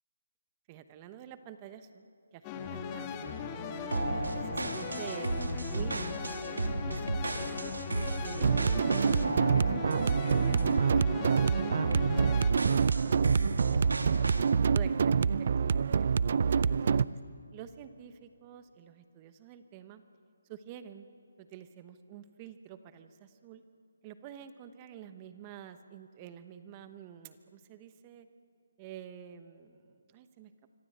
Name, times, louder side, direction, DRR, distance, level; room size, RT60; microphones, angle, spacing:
voice 1, 0.7-3.4 3.8-7.8 8.2-13.2 13.5-14.0 14.7-16.1 16.7-17.0 17.5-20.0 20.5-21.1 21.4-23.6 24.0-28.3 28.8-30.7, right 9 dB, 25° right, 10 dB, 1.0 m, -49 dB
sound 1, 2.4-12.5, left 5 dB, 20° left, 1.9 m, -38 dB
sound 2, 3.9-10.9 11.2-11.5 11.9-14.5, right 2 dB, 90° right, 2.7 m, -35 dB
sound 3, 8.4-17.1, right 6 dB, 50° right, 0.5 m, -26 dB
26.0 x 23.5 x 7.9 m, 2.5 s
figure-of-eight pair, 160°, 0 cm